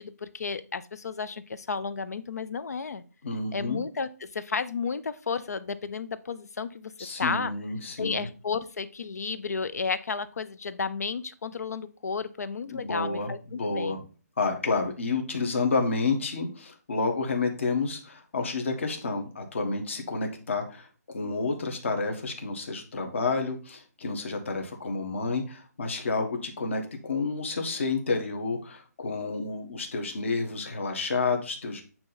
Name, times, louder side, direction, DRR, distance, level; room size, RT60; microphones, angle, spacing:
voice 1, 0.0-3.0 3.5-6.9 7.2-7.5 8.0-14.1, left 5 dB, 70° left, 14 dB, 0.6 m, -32 dB
voice 2, 3.2-3.8 7.0-8.3 12.7-14.0 14.4-20.9 21.1-31.8, left 4 dB, 45° left, 4 dB, 1.3 m, -30 dB
8.6 x 2.9 x 4.1 m, 0.36 s
hypercardioid pair, 175°, 9 cm